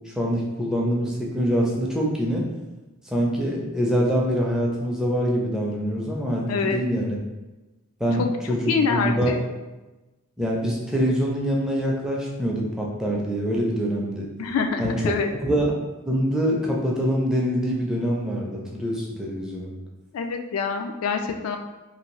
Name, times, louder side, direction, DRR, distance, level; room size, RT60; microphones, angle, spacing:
voice 1, 0.1-2.5 3.1-7.2 8.0-9.3 10.4-14.3 14.8-15.2 15.4-15.7 16.0-19.7, equal, 5° right, -3 dB, 0.4 m, -24 dB
voice 2, 6.5-6.8 8.2-8.3 8.7-9.4 14.4-15.3 20.1-21.6, left 5 dB, 70° left, 5 dB, 0.3 m, -25 dB
2.6 x 2.6 x 3.0 m, 1.1 s
head